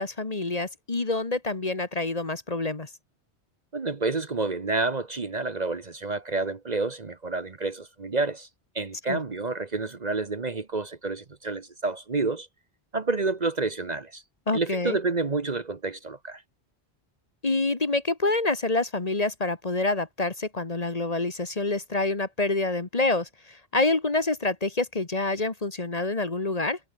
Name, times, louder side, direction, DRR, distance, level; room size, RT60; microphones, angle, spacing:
voice 1, 0.0-2.9 9.1-9.2 14.5-15.0 17.4-26.8, left 2 dB, 35° left, 1.6 m, -27 dB
voice 2, 3.7-8.5 8.7-12.5 12.9-14.2 14.5-16.4, right 3 dB, 40° right, 1.2 m, -29 dB
omnidirectional pair, 1.1 m